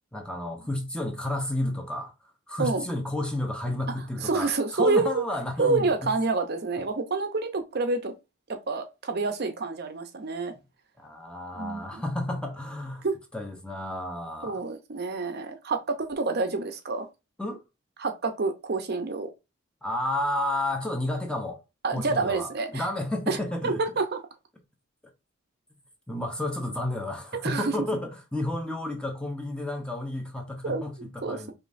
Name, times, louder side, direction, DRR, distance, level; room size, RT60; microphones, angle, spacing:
voice 1, 0.1-6.1 11.0-13.1 13.3-14.6 17.4-17.6 19.8-21.6 21.9-23.8 26.1-31.5, left 1 dB, 5° left, 0.7 m, -31 dB
voice 2, 4.2-5.2 5.6-8.1 8.5-10.5 11.5-12.0 13.0-13.2 14.4-17.1 18.0-19.3 21.8-22.8 23.3-23.4 23.6-24.2 27.4-27.7 30.6-30.8 31.2-31.5, right 3 dB, 50° right, 0.7 m, -28 dB
5.0 x 3.1 x 2.6 m
head